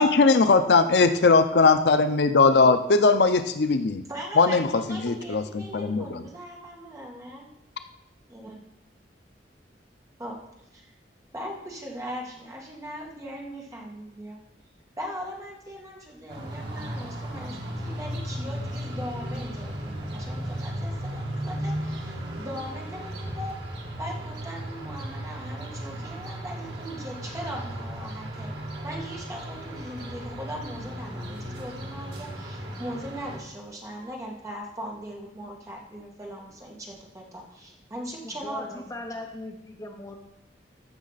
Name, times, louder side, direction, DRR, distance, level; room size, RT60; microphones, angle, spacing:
voice 1, 0.0-4.0 4.4-6.2, left 4 dB, 65° left, 9 dB, 0.6 m, -20 dB
voice 2, 4.1-7.5 8.3-8.6 10.2-10.4 10.7-10.9 11.3-14.4 15.0-23.6 24.0-28.5 28.8-38.8 39.1-39.2, equal, 20° right, -1 dB, 1.9 m, -39 dB
sound 1, 16.3-33.4, right 1 dB, 75° right, 1.8 m, -35 dB
voice 3, 38.2-40.2, left 2 dB, 20° left, 2 dB, 0.8 m, -39 dB
15.0 x 6.1 x 4.1 m, 0.81 s
head